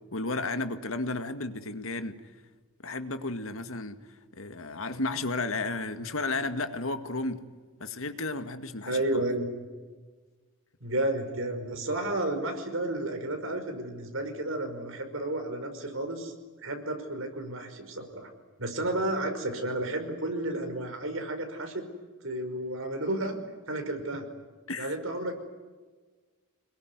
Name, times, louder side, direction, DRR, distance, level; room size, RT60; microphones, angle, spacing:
voice 1, 0.1-2.2 2.8-4.0 4.4-7.5 7.8-9.0 24.7-24.9, left 2 dB, 80° left, 2.1 m, -33 dB
voice 2, 8.9-9.5 10.8-16.3 16.6-18.3 18.6-21.9 22.2-23.4 23.7-24.3 24.8-25.4, right 1 dB, 75° right, 5.4 m, -32 dB
26.5 x 21.5 x 9.7 m
head